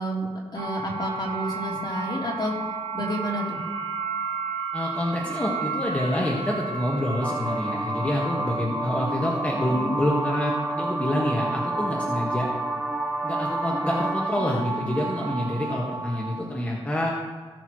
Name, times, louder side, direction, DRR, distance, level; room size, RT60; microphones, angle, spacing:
voice 1, 0.0-2.5 2.9-3.6 9.7-10.0 14.4-15.0, equal, 45° left, -5 dB, 3.5 m, -31 dB
sound 1, 0.6-16.5, right 3 dB, 90° right, 1.7 m, -33 dB
voice 2, 4.7-12.5 13.2-17.1, equal, 15° left, -4 dB, 1.8 m, -27 dB
sound 2, 7.2-14.3, right 1 dB, 5° right, 0.5 m, -30 dB
18.0 x 6.9 x 3.2 m, 1.5 s
cardioid pair, 80°, 11 cm